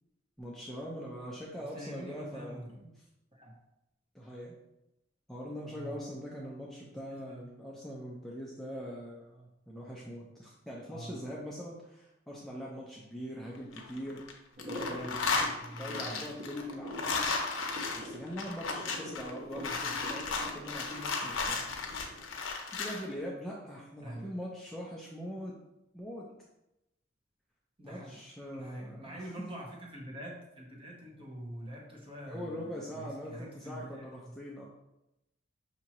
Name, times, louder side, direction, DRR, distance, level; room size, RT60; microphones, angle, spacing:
voice 1, 0.4-2.9 4.1-4.6 5.3-14.2 14.6-17.2 17.9-21.7 22.7-25.5 25.9-26.3 27.8-29.3 32.3-34.6, equal, ahead, -5 dB, 0.5 m, -42 dB
voice 2, 1.6-2.8 3.3-3.6 5.7-6.0 6.9-7.4 10.8-11.2 14.9-16.4 19.7-19.9 24.0-24.3 27.8-28.2 28.5-34.4, equal, 30° right, -2 dB, 1.0 m, -46 dB
sound 1, 13.6-14.3 14.6-23.0, left 4 dB, 80° left, 0.6 m, -34 dB
sound 2, 14.5-22.4, equal, 85° right, 1.1 m, -44 dB
5.8 x 2.7 x 2.9 m, 0.90 s
head